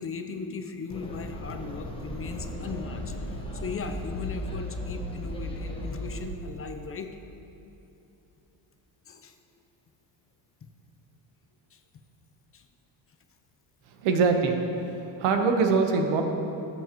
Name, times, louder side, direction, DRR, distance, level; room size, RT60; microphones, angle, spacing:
voice 1, 0.0-3.1 3.5-7.2 9.1-9.3 11.7-11.8 12.5-12.6 14.9-15.0, left 4 dB, 30° left, 6 dB, 0.6 m, -37 dB
sound 1, 0.9-6.3, left 1 dB, 10° left, 1.3 m, -36 dB
voice 2, 14.0-14.6 14.9-16.2, right 4 dB, 80° right, 5 dB, 1.1 m, -23 dB
13.5 x 7.1 x 3.0 m, 2.9 s
supercardioid pair, 95°, 49 cm